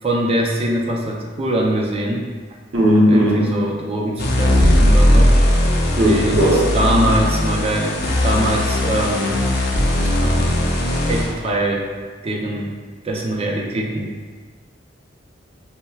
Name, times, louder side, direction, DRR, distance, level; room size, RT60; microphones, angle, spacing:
voice 1, 0.0-2.3 3.0-5.3 6.0-9.4 10.2-10.5 11.1-11.9 12.2-12.7 13.0-14.1, right 1 dB, 30° right, -1 dB, 0.4 m, -22 dB
voice 2, 2.7-3.5 6.0-6.7, equal, 90° right, -3 dB, 0.8 m, -15 dB
sound 1, 4.2-11.3, left 1 dB, 55° left, 0.5 m, -18 dB
5.4 x 2.1 x 2.3 m, 1.5 s
head